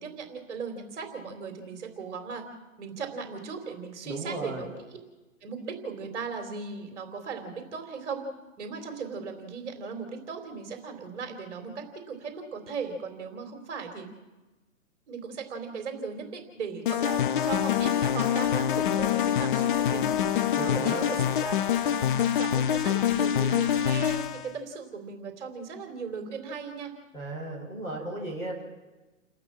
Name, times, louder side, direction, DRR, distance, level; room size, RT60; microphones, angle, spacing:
voice 1, 0.0-2.4 2.8-4.7 5.4-8.2 8.6-14.1 15.1-20.1 20.5-26.9, right 5 dB, 55° right, 5 dB, 3.6 m, -37 dB
voice 2, 4.1-4.7 20.6-21.1 27.1-28.6, right 1 dB, 10° left, -2 dB, 5.1 m, -35 dB
sound 1, 16.8-24.5, left 9 dB, 35° left, 0.8 m, -25 dB
29.5 x 12.5 x 7.4 m, 1.2 s
hypercardioid pair, 155°, 42 cm